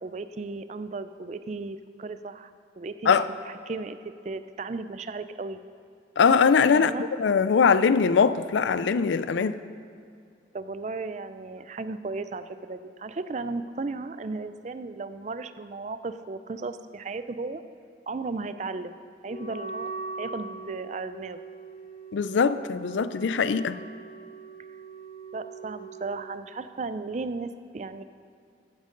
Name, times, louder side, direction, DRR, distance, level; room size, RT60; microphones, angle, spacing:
voice 1, 0.0-2.5 2.8-3.2 3.4-4.0 4.2-5.6 6.7-7.1 10.5-17.6 18.1-19.0 19.2-19.9 20.2-21.4 25.3-28.0, right 3 dB, 40° right, 0.4 m, -35 dB
voice 2, 6.2-6.9 7.2-9.6 22.1-23.8, left 5 dB, 85° left, 0.4 m, -21 dB
Wind instrument woodwind instrument, 19.2-26.3, right 4 dB, 35° left, 0.6 m, -41 dB
14.5 x 10.5 x 3.8 m
head